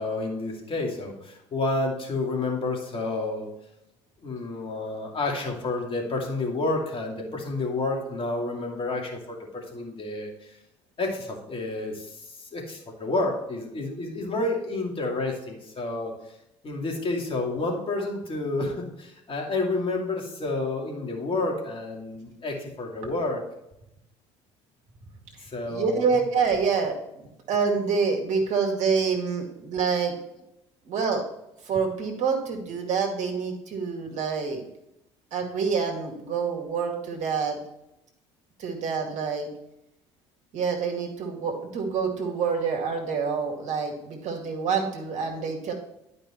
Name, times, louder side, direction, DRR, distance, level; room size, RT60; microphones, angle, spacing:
voice 1, 0.0-3.5 4.2-10.5 11.0-16.1 16.6-23.4 25.4-26.3, left 2 dB, 35° left, 0 dB, 2.6 m, -30 dB
voice 2, 25.7-30.1 30.8-31.2 31.6-34.6 35.3-37.6 38.6-39.5 40.5-45.7, right 5 dB, 55° right, 3 dB, 2.1 m, -27 dB
12.0 x 5.3 x 3.1 m, 0.84 s
hypercardioid pair, 60°, 15 cm